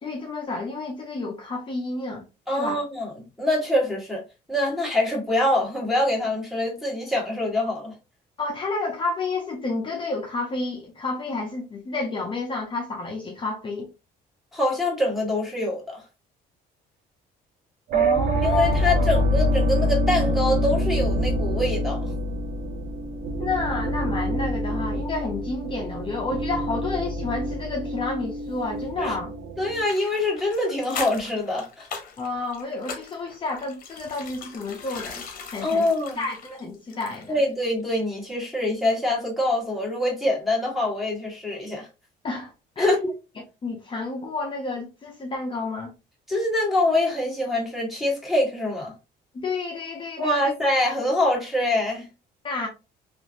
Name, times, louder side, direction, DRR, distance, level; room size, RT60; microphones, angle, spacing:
voice 1, 0.0-2.2 2.5-2.8 8.4-13.9 17.9-19.2 23.4-29.3 32.2-35.2 35.5-35.9 36.2-37.3 42.2-43.0 43.6-45.9 49.3-50.5 52.4-52.7, left 3 dB, 30° left, 0.7 m, -30 dB
voice 2, 2.5-4.2 4.5-7.9 14.5-16.0 18.4-22.1 29.0-29.2 29.6-31.9 35.6-36.2 37.3-41.9 42.8-43.1 46.3-48.9 50.2-52.1, left 1 dB, ahead, 1.4 m, -24 dB
sound 1, 17.9-29.8, equal, 55° right, 0.5 m, -26 dB
sound 2, 29.8-37.4 37.7-37.8, left 5 dB, 55° left, 0.8 m, -39 dB
3.0 x 2.5 x 2.5 m
cardioid pair, 110°, 17 cm